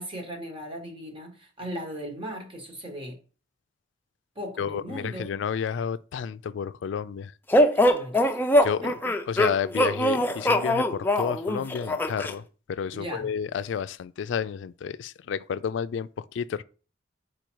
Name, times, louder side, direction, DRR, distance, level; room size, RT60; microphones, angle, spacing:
voice 1, 0.0-3.2 4.3-5.3 7.7-8.3 8.8-8.9 12.9-13.3, equal, 30° right, 1.5 m, -37 dB
voice 2, 4.6-7.3 8.6-8.9 9.3-16.6, left 7 dB, 75° left, 0.3 m, -31 dB
sound 1, 7.5-12.3, left 1 dB, 10° left, 0.5 m, -22 dB
5.2 x 4.8 x 4.6 m
head